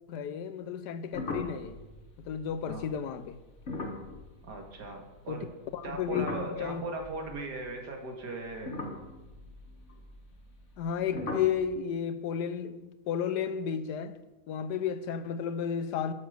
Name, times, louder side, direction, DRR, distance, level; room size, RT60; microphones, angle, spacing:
voice 1, 0.1-1.8 2.3-3.4 5.3-5.4 5.7-6.8 10.8-14.1 14.5-16.1, left 8 dB, 85° left, 1.4 m, -32 dB
sound 1, 1.1-5.5 5.7-7.9 8.5-10.9 11.1-11.6, left 2 dB, 45° left, 1.8 m, -40 dB
voice 2, 4.4-5.5 5.8-8.8, right 2 dB, 90° right, 2.5 m, -38 dB
12.0 x 7.1 x 6.6 m
omnidirectional pair, 1.7 m